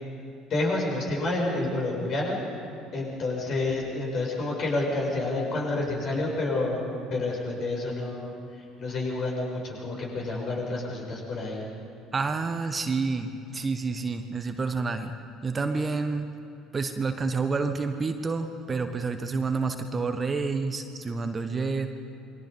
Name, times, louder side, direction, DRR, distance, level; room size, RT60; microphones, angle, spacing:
voice 1, 0.5-2.4 2.9-6.8 7.1-11.6, left 2 dB, 45° left, -2 dB, 7.2 m, -29 dB
voice 2, 12.1-15.1 15.4-16.3 16.7-21.9, right 4 dB, 25° right, 7 dB, 1.4 m, -29 dB
28.5 x 23.0 x 5.5 m, 2.6 s
figure-of-eight pair, 60°, 0 cm